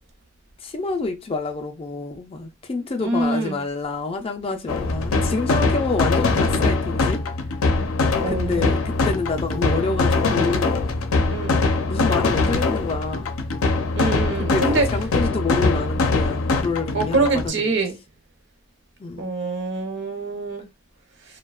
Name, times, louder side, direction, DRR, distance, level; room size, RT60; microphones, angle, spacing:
voice 1, 0.6-7.2 8.3-10.8 11.9-13.3 14.4-17.7 19.0-19.4, left 3 dB, 25° left, 0.4 m, -27 dB
voice 2, 3.0-3.6 8.2-8.7 11.3-11.6 13.9-14.9 16.9-18.0 19.2-20.7, right 3 dB, 55° right, 0.6 m, -24 dB
sound 1, 4.7-17.5, left 3 dB, 90° left, 0.5 m, -22 dB
2.7 x 2.2 x 2.3 m
head